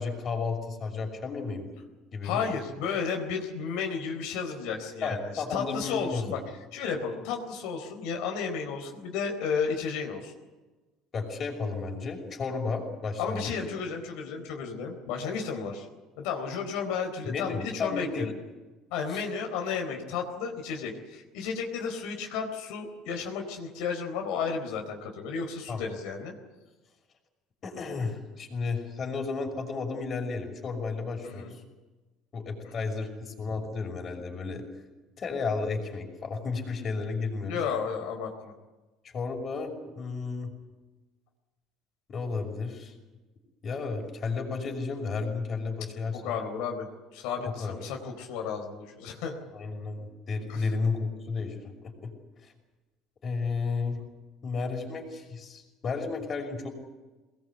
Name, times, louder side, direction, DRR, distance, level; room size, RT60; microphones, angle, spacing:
voice 1, 0.0-1.7 2.1-2.5 5.0-6.4 11.1-13.5 17.2-18.3 19.1-19.2 25.7-25.8 27.6-31.6 32.3-34.7 35.2-37.6 39.1-40.5 42.1-42.9 43.6-46.2 47.4-47.8 49.5-52.1 52.4-52.5 53.2-54.0 54.4-56.7, left 4 dB, 35° left, 3 dB, 5.9 m, -33 dB
voice 2, 2.2-6.4 6.7-10.3 13.2-15.9 16.2-18.3 18.9-26.3 31.2-31.5 32.6-32.9 37.5-38.5 46.1-46.9 47.1-49.4 50.5-50.7, left 6 dB, 80° left, 2 dB, 4.3 m, -33 dB
23.5 x 20.5 x 8.3 m, 1.2 s
cardioid pair, 135°, 0 cm